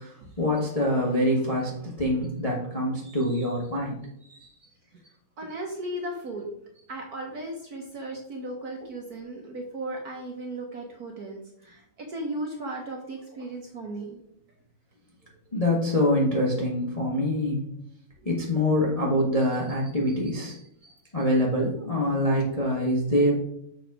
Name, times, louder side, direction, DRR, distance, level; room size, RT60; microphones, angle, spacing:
voice 1, 0.0-4.0 4.3-4.5 15.5-17.6 18.2-20.6 21.1-23.3, left 1 dB, 25° left, -3 dB, 0.8 m, -25 dB
voice 2, 5.4-6.5 6.9-14.2 18.2-18.3, right 1 dB, 55° right, 1 dB, 1.1 m, -36 dB
7.0 x 3.9 x 4.7 m, 0.72 s
omnidirectional pair, 2.4 m